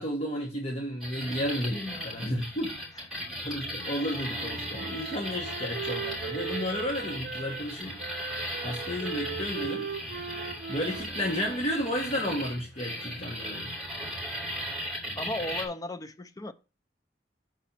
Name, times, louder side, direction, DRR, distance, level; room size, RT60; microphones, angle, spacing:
voice 1, 0.0-2.7 3.4-8.0 8.6-9.9 10.7-13.7, equal, 35° left, 1.2 m, -32 dB
sound 1, 1.0-15.7, equal, ahead, 3.1 m, -37 dB
Wind instrument woodwind instrument, 3.9-7.7 8.0-12.5, right 6 dB, 55° right, 0.5 m, -39 dB
voice 2, 15.2-16.5, left 1 dB, 20° left, 0.5 m, -35 dB
6.7 x 4.3 x 5.7 m
head